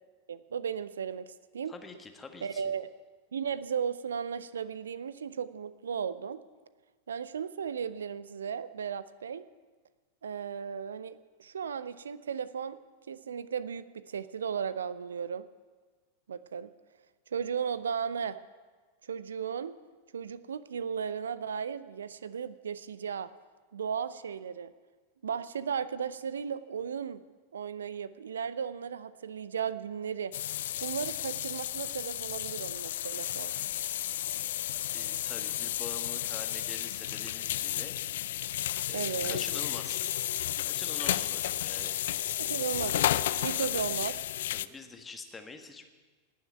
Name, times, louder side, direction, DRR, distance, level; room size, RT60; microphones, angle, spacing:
voice 1, 0.3-1.7 2.4-2.9 3.3-6.4 7.1-9.4 10.2-12.8 13.1-15.5 16.3-16.7 17.3-18.4 19.0-19.7 20.1-23.3 23.7-24.7 25.2-27.2 27.5-30.3 30.8-33.5 38.9-39.4 42.4-43.1 43.4-44.2, right 7 dB, 65° right, 16 dB, 0.5 m, -35 dB
voice 2, 1.7-2.7 34.9-37.9 38.9-40.2 40.6-42.0 43.6-43.8 44.5-45.9, left 4 dB, 15° left, 5 dB, 1.5 m, -45 dB
sound 1, 30.3-44.7, left 12 dB, 60° left, 0.4 m, -32 dB
18.5 x 6.5 x 9.2 m, 1.4 s
figure-of-eight pair, 90°, 0 cm